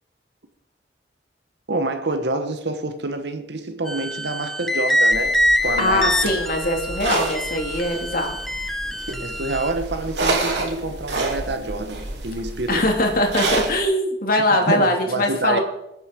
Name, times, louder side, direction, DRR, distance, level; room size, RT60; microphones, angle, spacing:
voice 1, 1.7-6.2 9.2-12.9 14.7-15.6, right 2 dB, 70° right, 1.2 m, -27 dB
sound 1, 3.9-9.7, left 1 dB, ahead, 1.0 m, -24 dB
sound 2, 5.1-13.8, right 2 dB, 90° right, 3.0 m, -29 dB
voice 2, 5.8-8.4 12.7-15.6, left 1 dB, 55° left, 2.7 m, -21 dB
21.5 x 8.0 x 5.2 m
head